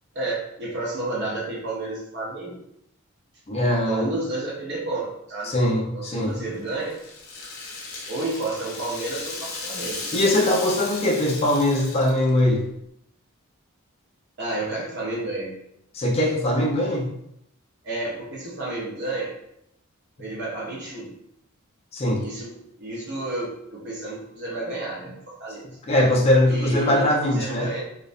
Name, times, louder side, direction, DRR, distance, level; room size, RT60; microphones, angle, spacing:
voice 1, 0.1-2.6 3.8-5.0 5.3-5.5 5.9-6.9 8.1-10.0 14.4-15.6 17.8-19.3 20.2-21.1 22.2-22.5 22.8-25.7 26.5-27.8, right 2 dB, 50° right, -3 dB, 0.6 m, -31 dB
voice 2, 3.5-4.1 5.4-6.4 10.1-12.6 15.9-17.1 21.9-22.2 25.9-27.7, left 1 dB, 30° left, -1 dB, 0.3 m, -21 dB
Rattle (instrument), 6.2-12.4, left 3 dB, 75° left, 0.6 m, -36 dB
2.5 x 2.1 x 2.4 m, 0.77 s
head